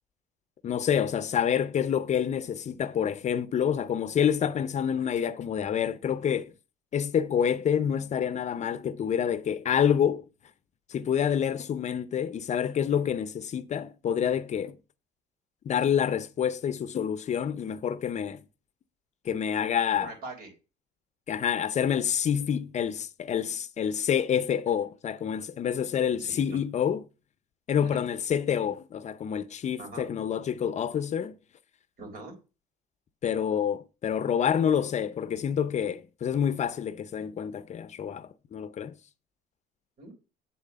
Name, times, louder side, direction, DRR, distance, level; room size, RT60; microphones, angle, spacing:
voice 1, 0.6-6.5 6.9-10.2 10.9-14.8 15.7-18.4 19.3-20.1 21.3-27.0 27.7-31.3 33.2-38.9, left 8 dB, 45° left, 0.6 m, -27 dB
voice 2, 20.0-20.5 26.2-26.6 27.8-28.0 29.8-30.1 32.0-32.3 40.0-40.1, right 3 dB, 60° right, 3.9 m, -42 dB
8.3 x 4.3 x 6.7 m
cardioid pair, 110°, 17 cm